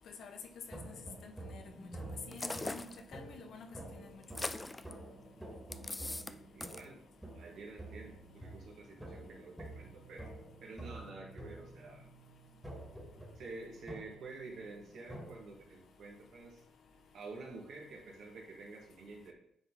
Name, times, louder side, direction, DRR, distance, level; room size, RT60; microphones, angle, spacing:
sound 1, 0.7-15.3, right 1 dB, 5° right, 1.8 m, -49 dB
voice 1, 1.2-1.6 2.3-4.2, left 4 dB, 60° left, 6 dB, 0.9 m, -50 dB
sound 2, 2.3-3.0 4.2-4.9 5.7-6.3 6.6-6.9, left 2 dB, 15° left, 0.3 m, -40 dB
voice 2, 5.9-7.0 7.4-10.3 10.6-12.1 13.4-16.6 17.1-19.3, right 3 dB, 65° right, -1 dB, 2.0 m, -49 dB
9.2 x 3.9 x 3.9 m, 0.74 s
cardioid pair, 110°, 0 cm